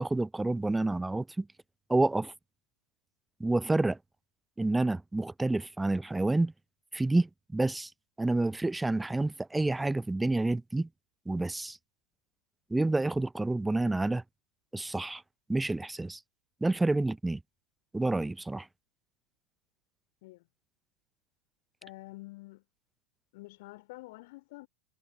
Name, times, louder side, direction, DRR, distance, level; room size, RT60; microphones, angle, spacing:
voice 1, 0.0-1.5 1.9-2.3 3.4-4.0 4.6-6.5 6.9-7.9 8.2-10.9 11.3-11.8 12.7-14.2 14.7-15.2 15.5-16.2 16.6-17.4 17.9-18.7, right 2 dB, 5° right, 0.5 m, -28 dB
voice 2, 21.8-22.6 23.3-24.7, left 22 dB, 50° left, 4.1 m, -48 dB
figure-of-eight pair, 90°, 0 cm